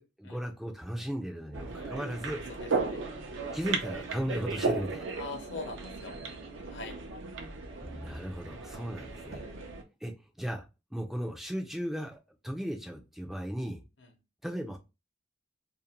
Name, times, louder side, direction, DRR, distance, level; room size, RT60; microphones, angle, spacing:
voice 1, 0.0-2.4 3.5-5.2 7.8-9.4 10.0-10.1 10.4-10.6 10.9-12.2 12.4-13.8 14.4-14.8, equal, ahead, 2 dB, 0.3 m, -36 dB
sound 1, 1.5-9.8, right 3 dB, 85° right, 0.5 m, -36 dB
voice 2, 2.6-3.0 5.1-6.1 6.7-7.0 9.2-9.6, left 3 dB, 75° left, 4 dB, 0.7 m, -42 dB
2.5 x 2.1 x 2.8 m, 0.27 s
head